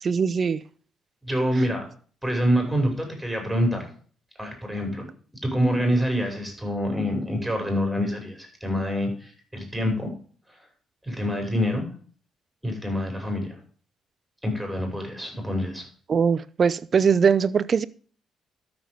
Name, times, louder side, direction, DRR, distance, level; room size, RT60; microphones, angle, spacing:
voice 1, 0.0-0.6 16.1-17.9, right 6 dB, 45° right, 0.7 m, -21 dB
voice 2, 1.2-1.8 2.2-3.9 4.4-5.1 5.4-10.1 11.0-11.9 12.6-13.6 14.4-15.8, equal, ahead, 6.0 m, -26 dB
13.0 x 7.1 x 5.1 m
cardioid pair, 90°, 0 cm